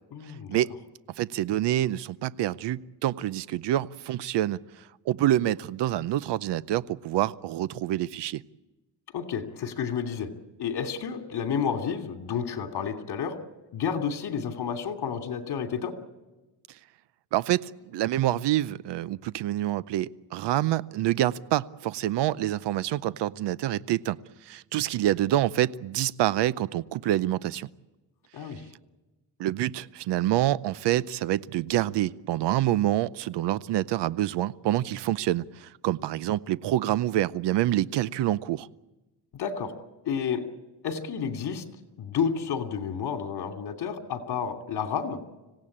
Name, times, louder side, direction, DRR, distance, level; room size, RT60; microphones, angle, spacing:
voice 1, 0.1-0.6 9.1-10.3 10.6-13.3 13.7-15.9 28.3-28.6 39.3-39.7 40.0-40.4 40.8-41.6 42.0-45.2, left 7 dB, 65° left, 6 dB, 2.8 m, -30 dB
voice 2, 1.2-4.6 5.1-8.4 17.3-24.2 24.5-27.7 29.4-38.7, right 13 dB, 90° right, 19 dB, 0.7 m, -27 dB
26.0 x 17.0 x 8.7 m, 1.1 s
cardioid pair, 115°, 41 cm